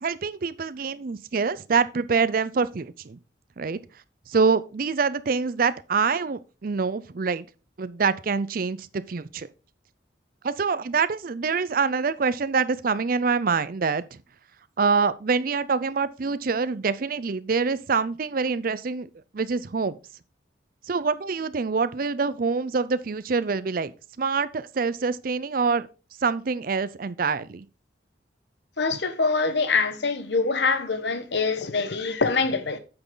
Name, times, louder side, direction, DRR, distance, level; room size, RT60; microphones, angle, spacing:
voice 1, 0.0-3.2 3.6-3.8 4.3-7.5 7.8-9.5 10.4-14.2 14.8-19.1 19.3-20.0 20.9-25.9 26.2-27.7, right 5 dB, 50° right, 0.5 m, -25 dB
voice 2, 28.8-32.8, left 4 dB, 65° left, 1.0 m, -24 dB
8.7 x 6.1 x 3.8 m
head